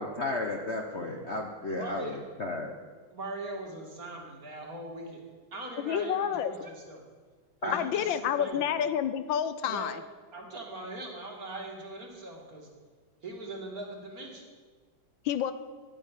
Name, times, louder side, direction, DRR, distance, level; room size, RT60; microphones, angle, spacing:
voice 1, 0.0-2.8 7.6-7.7, left 2 dB, 45° left, 2 dB, 1.0 m, -33 dB
voice 2, 1.7-2.2 3.1-5.2 5.5-7.0 7.6-8.8 9.6-9.9 10.3-12.7 13.2-14.5, right 2 dB, 45° right, 0 dB, 2.9 m, -40 dB
voice 3, 5.8-6.5 7.7-10.0 15.2-15.5, left 9 dB, 75° left, 12 dB, 1.4 m, -29 dB
12.0 x 8.8 x 9.1 m, 1.5 s
omnidirectional pair, 2.2 m